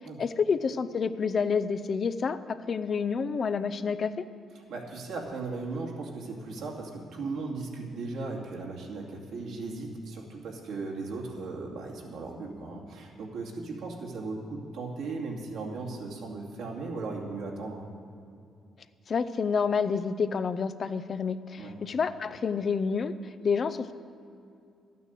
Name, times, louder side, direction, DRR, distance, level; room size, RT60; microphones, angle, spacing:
voice 1, 0.2-4.1 19.1-23.9, left 5 dB, 50° left, 12 dB, 0.6 m, -29 dB
voice 2, 4.6-17.8 21.6-21.7, right 3 dB, 80° right, -1 dB, 2.5 m, -37 dB
12.0 x 9.3 x 7.7 m, 2.5 s
cardioid pair, 90°, 0 cm